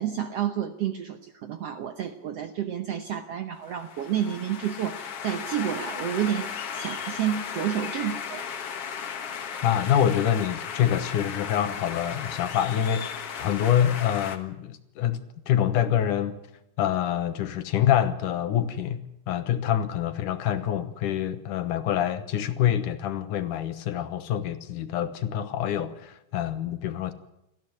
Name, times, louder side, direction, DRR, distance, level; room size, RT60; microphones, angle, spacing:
voice 1, 0.0-8.5, right 10 dB, 70° right, 1.5 m, -30 dB
sound 1, 3.7-14.4, left 7 dB, 50° left, 2.1 m, -36 dB
voice 2, 9.6-16.4 16.8-27.1, left 10 dB, 75° left, 2.6 m, -26 dB
18.5 x 15.0 x 9.6 m
omnidirectional pair, 3.8 m